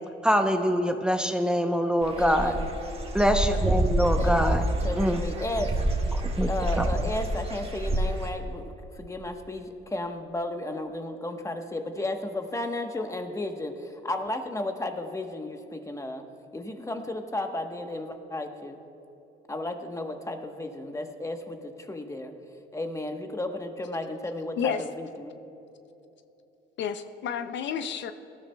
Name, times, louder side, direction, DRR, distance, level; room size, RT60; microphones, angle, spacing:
voice 1, 0.2-2.5 3.1-4.6 5.0-5.2 6.4-6.5 6.8-6.9, equal, 5° right, 6 dB, 0.7 m, -24 dB
Dog / Bird, 2.0-8.3, right 1 dB, 30° right, 1.4 m, -28 dB
voice 2, 2.2-2.7 4.2-5.7 6.5-16.2 16.5-18.8 19.5-22.3 22.7-25.3, left 2 dB, 15° left, 5 dB, 1.1 m, -33 dB
voice 3, 26.8-28.1, left 7 dB, 70° left, 10 dB, 0.5 m, -30 dB
19.0 x 13.0 x 2.2 m, 3.0 s
cardioid pair, 90°, 20 cm